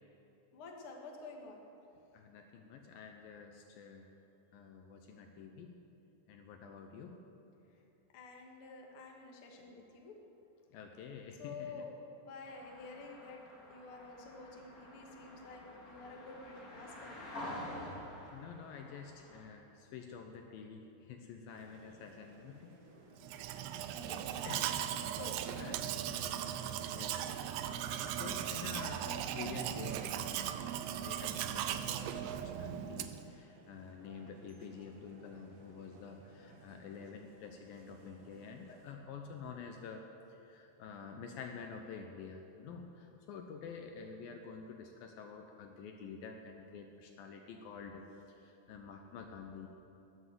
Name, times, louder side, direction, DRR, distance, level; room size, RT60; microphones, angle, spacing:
voice 1, 0.5-1.6 8.1-10.2 11.4-11.9 12.2-13.4 13.7-17.2 24.0-24.5 25.1-25.6 27.7-28.0, left 3 dB, 50° left, 1 dB, 1.9 m, -50 dB
voice 2, 2.1-4.1 4.5-5.7 6.3-7.2 10.7-11.8 18.3-22.8 23.4-24.1 24.4-24.8 25.6-25.8 26.1-27.2 28.1-49.7, left 6 dB, 75° left, 4 dB, 2.4 m, -49 dB
sound 1, 12.4-19.5, left 1 dB, 30° left, 2.1 m, -48 dB
sound 2, 21.5-38.9, right 3 dB, 60° right, 2.9 m, -59 dB
Domestic sounds home sounds, 23.2-33.3, right 10 dB, 80° right, 2.1 m, -38 dB
19.5 x 7.9 x 7.7 m, 2.9 s
omnidirectional pair, 4.5 m